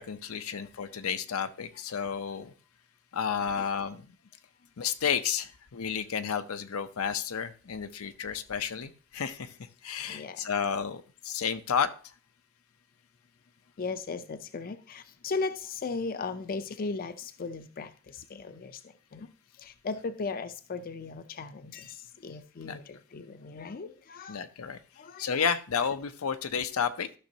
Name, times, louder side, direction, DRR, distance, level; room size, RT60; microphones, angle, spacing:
voice 1, 0.0-2.5 3.1-4.1 4.8-9.5 9.8-11.9 22.6-22.8 24.3-24.8 25.2-27.1, left 7 dB, 85° left, 9 dB, 0.6 m, -31 dB
voice 2, 0.5-1.0 2.0-2.1 3.6-3.7 10.1-10.5 13.8-24.4 25.0-25.4, left 4 dB, 45° left, 11 dB, 0.5 m, -37 dB
13.5 x 6.1 x 2.7 m, 0.38 s
head